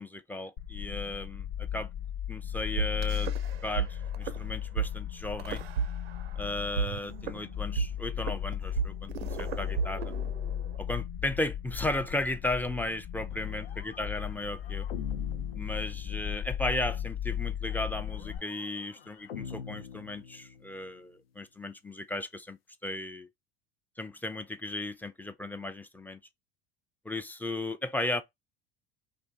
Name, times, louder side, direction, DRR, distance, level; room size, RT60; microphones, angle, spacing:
voice 1, 0.0-1.4 1.7-1.9 2.3-3.3 3.6-5.6 6.4-9.1 9.4-10.1 10.8-14.9 15.6-23.3 24.0-26.2 27.1-28.2, left 2 dB, 5° left, 0.3 m, -35 dB
sound 1, 0.6-18.4, left 10 dB, 50° left, 0.8 m, -36 dB
sound 2, 2.8-3.9 4.1-4.4 4.8-4.9 5.4-6.4 6.8-10.8, right 8 dB, 85° right, 0.5 m, -33 dB
sound 3, 13.3-16.6 17.7-20.9, left 6 dB, 80° left, 0.5 m, -46 dB
2.6 x 2.4 x 3.3 m
hypercardioid pair, 70°, 30 cm